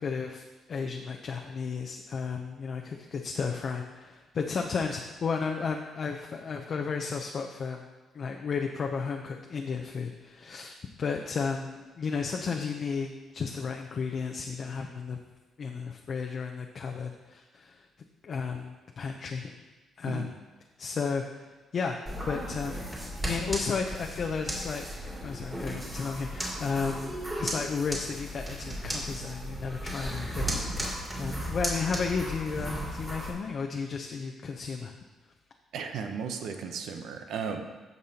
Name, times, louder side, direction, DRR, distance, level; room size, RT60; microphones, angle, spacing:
voice 1, 0.0-0.4 0.7-7.9 8.1-15.2 15.6-17.8 18.2-19.5 20.0-20.3 20.8-21.5 21.7-22.0 22.2-24.9 25.2-30.6 31.2-34.9, left 5 dB, 50° left, 2 dB, 0.6 m, -33 dB
sound 1, 22.1-33.3, equal, 15° right, 2.5 m, -35 dB
voice 2, 35.7-37.6, right 6 dB, 80° right, 5 dB, 0.7 m, -35 dB
14.0 x 5.4 x 2.8 m, 1.2 s
cardioid pair, 90°, 0 cm